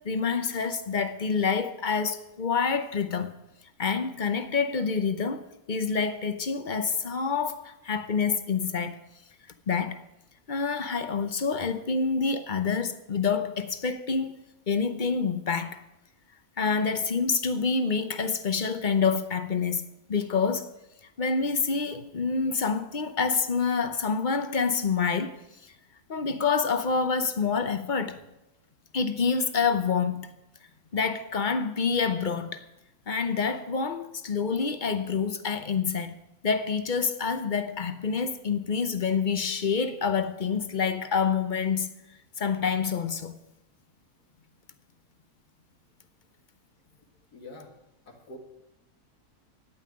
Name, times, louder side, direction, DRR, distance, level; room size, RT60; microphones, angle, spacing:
voice 1, 0.0-3.3 3.8-9.0 9.7-10.0 10.5-14.4 14.7-15.8 16.6-20.7 21.2-25.4 26.1-28.2 28.9-30.3 30.9-32.6 33.1-36.2 36.4-41.9 42.4-43.3, left 5 dB, 40° left, 0.8 m, -27 dB
voice 2, 47.3-47.7 48.1-48.4, left 2 dB, 90° left, 2.6 m, -45 dB
17.0 x 5.7 x 10.0 m
omnidirectional pair, 1.6 m